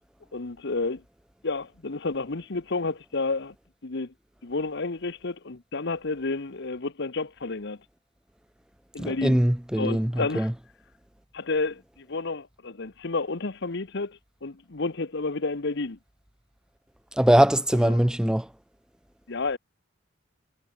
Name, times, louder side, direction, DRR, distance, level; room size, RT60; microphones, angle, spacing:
voice 1, 0.3-1.0 1.4-3.5 3.8-4.1 4.4-7.8 8.9-9.4 9.8-10.5 11.3-16.0 17.8-18.0 19.3-19.6, left 3 dB, 60° left, 1.1 m, -30 dB
voice 2, 9.0-10.5 17.1-18.5, right 1 dB, 5° right, 0.3 m, -22 dB
head